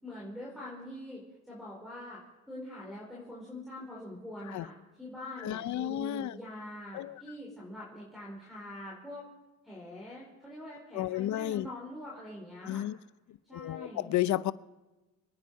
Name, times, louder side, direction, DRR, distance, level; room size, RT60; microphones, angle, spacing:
voice 1, 0.0-2.2 2.5-9.3 9.6-12.8 13.5-14.1, left 1 dB, ahead, 4.4 m, -44 dB
voice 2, 5.4-6.4 6.9-7.2 10.9-11.7 12.7-13.0 13.5-14.5, left 13 dB, 70° left, 0.6 m, -32 dB
26.5 x 9.7 x 4.7 m
cardioid pair, 90°, 30 cm